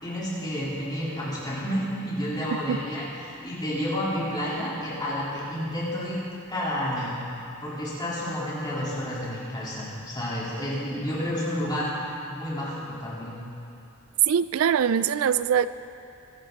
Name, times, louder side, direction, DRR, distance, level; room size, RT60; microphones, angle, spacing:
voice 1, 0.0-7.2 7.6-13.4, equal, 20° left, -8 dB, 3.9 m, -30 dB
voice 2, 14.3-15.7, right 8 dB, 70° right, 14 dB, 0.3 m, -23 dB
23.0 x 11.0 x 4.1 m, 2.7 s
head